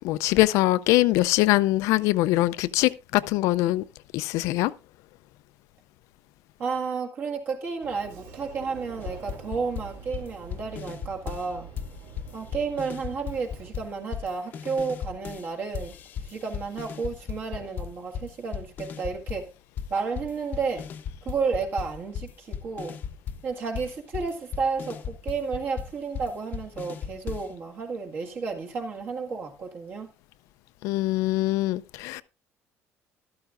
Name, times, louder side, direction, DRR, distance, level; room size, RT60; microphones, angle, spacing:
voice 1, 0.0-3.8 4.1-4.7 30.8-32.2, left 17 dB, 75° left, 0.5 m, -23 dB
voice 2, 6.6-11.7 12.3-15.9 16.2-19.5 19.9-20.9 21.2-23.0 23.4-30.1, right 5 dB, 40° right, 1.8 m, -32 dB
Sliding door, 7.8-13.7, right 6 dB, 75° right, 2.1 m, -46 dB
sound 1, 9.0-11.5 11.8-15.5 15.7-19.5 19.8-27.6, left 7 dB, 35° left, 0.8 m, -36 dB
13.5 x 12.5 x 2.5 m
cardioid pair, 180°, 5 cm